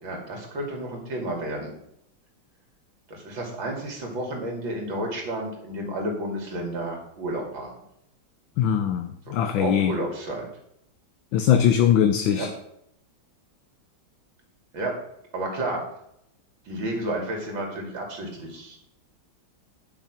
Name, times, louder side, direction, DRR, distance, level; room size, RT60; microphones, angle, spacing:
voice 1, 0.0-1.7 3.1-7.7 9.3-10.5 12.3-12.5 14.7-14.9 15.3-15.8 16.6-18.8, right 1 dB, 65° right, 1 dB, 3.2 m, -31 dB
voice 2, 8.6-9.9 11.3-12.5, left 9 dB, 75° left, 8 dB, 1.4 m, -21 dB
10.5 x 6.0 x 6.0 m, 0.76 s
omnidirectional pair, 2.2 m